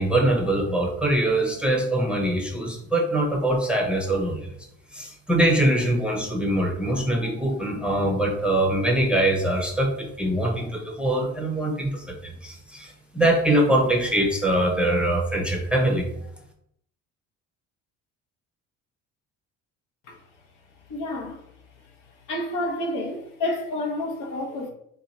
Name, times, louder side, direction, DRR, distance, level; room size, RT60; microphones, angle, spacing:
voice 1, 0.0-4.5 4.9-16.1, right 1 dB, 5° right, 0.7 m, -23 dB
voice 2, 20.9-21.4 22.3-24.7, left 1 dB, 60° left, 0.9 m, -29 dB
2.7 x 2.3 x 4.0 m
supercardioid pair, 75°, 34 cm